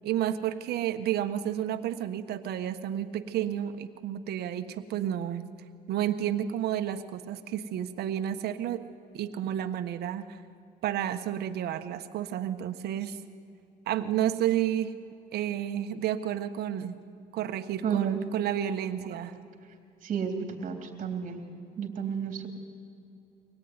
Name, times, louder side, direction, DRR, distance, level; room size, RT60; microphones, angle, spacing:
voice 1, 0.0-5.5 5.9-8.8 9.1-10.4 10.8-13.2 13.9-15.0 15.3-16.9 17.3-19.4, right 11 dB, 70° right, 9 dB, 1.4 m, -31 dB
voice 2, 17.8-18.2 20.0-20.3 20.6-21.4 21.8-22.5, right 7 dB, 50° right, 4 dB, 3.6 m, -31 dB
24.5 x 18.0 x 9.7 m, 2.6 s
cardioid pair, 110°, 17 cm